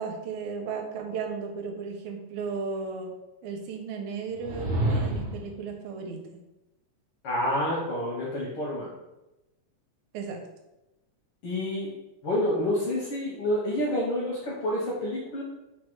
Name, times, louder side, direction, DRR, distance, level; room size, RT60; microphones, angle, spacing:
voice 1, 0.0-3.1 3.4-6.2 10.1-10.4, right 5 dB, 85° right, 3 dB, 2.0 m, -35 dB
sound 1, 4.3-5.5, right 1 dB, 65° right, 0.8 m, -28 dB
voice 2, 7.2-9.0 11.4-12.0 12.2-15.4, left 1 dB, 75° left, -4 dB, 1.3 m, -28 dB
4.7 x 2.2 x 4.5 m, 0.96 s
omnidirectional pair, 3.3 m